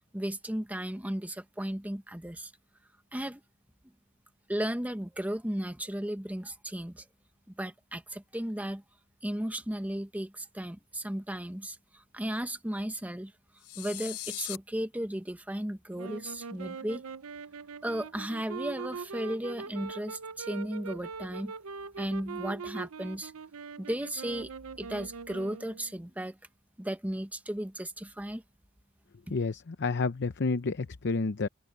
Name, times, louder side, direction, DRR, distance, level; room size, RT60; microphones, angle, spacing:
voice 1, 0.1-2.5 3.1-3.4 4.5-7.0 7.6-8.8 9.2-13.3 13.8-17.0 17.8-21.5 22.0-23.3 23.8-24.5 24.8-26.4 26.8-28.4, right 1 dB, 5° right, 0.9 m, -35 dB
sound 1, 13.6-14.6, left 16 dB, 90° left, 0.7 m, -39 dB
sound 2, 15.9-26.0, right 5 dB, 70° right, 0.7 m, -42 dB
voice 2, 29.3-31.5, left 3 dB, 55° left, 0.7 m, -30 dB
head